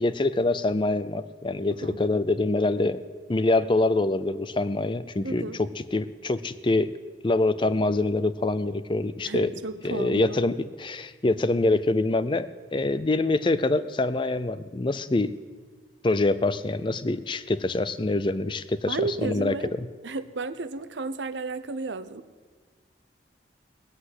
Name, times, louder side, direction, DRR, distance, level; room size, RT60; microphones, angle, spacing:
voice 1, 0.0-3.0 3.3-7.0 7.2-9.5 9.8-15.4 16.0-19.5, left 2 dB, 25° left, 14 dB, 0.5 m, -25 dB
voice 2, 5.2-5.6 9.3-10.4 18.9-19.7 20.0-22.2, right 3 dB, 80° right, 13 dB, 0.7 m, -32 dB
18.5 x 8.1 x 8.0 m, 1.5 s
head